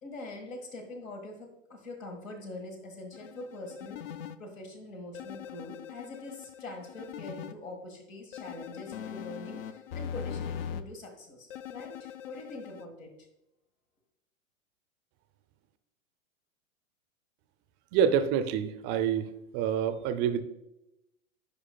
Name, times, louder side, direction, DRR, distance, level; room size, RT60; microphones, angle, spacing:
voice 1, 0.0-4.0 4.4-13.1, left 2 dB, 75° left, 3 dB, 1.7 m, -44 dB
sound 1, 3.1-4.4 5.1-7.5 8.3-10.8 11.5-12.9, left 8 dB, 45° left, 0.4 m, -41 dB
voice 2, 17.9-19.3 19.5-20.4, right 8 dB, 30° right, 10 dB, 0.5 m, -27 dB
10.5 x 4.8 x 2.3 m, 0.88 s
figure-of-eight pair, 105°, 40 cm